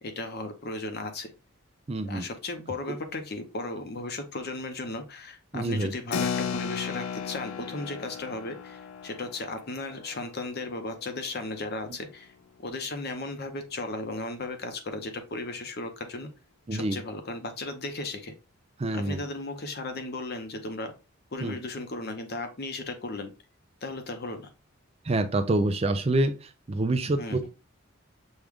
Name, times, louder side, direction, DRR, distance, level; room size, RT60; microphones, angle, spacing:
voice 1, 0.0-1.3 2.1-12.3 12.6-16.3 16.7-18.3 18.9-20.9 21.3-23.3 23.8-24.5 27.2-27.4, left 2 dB, 50° left, 6 dB, 0.8 m, -35 dB
voice 2, 1.9-2.3 2.9-3.0 5.5-5.9 16.7-17.0 18.8-19.2 21.4-21.5 25.0-27.5, right 2 dB, 30° right, 8 dB, 0.4 m, -27 dB
Keyboard (musical), 6.1-12.1, left 7 dB, 80° left, 0.5 m, -36 dB
6.3 x 2.4 x 3.5 m, 0.30 s
head